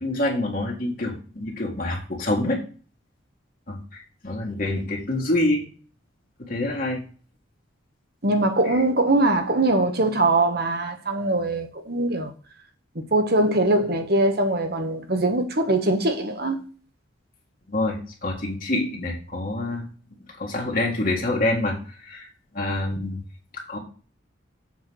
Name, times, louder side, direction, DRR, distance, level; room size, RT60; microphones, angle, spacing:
voice 1, 0.0-2.6 3.7-5.6 6.4-7.0 17.7-19.8 20.4-22.3 22.5-23.2 23.5-23.8, left 2 dB, 45° left, 1.8 m, -26 dB
voice 2, 8.2-12.3 12.9-16.6, right 2 dB, 55° right, 1.4 m, -22 dB
7.5 x 4.6 x 6.1 m
head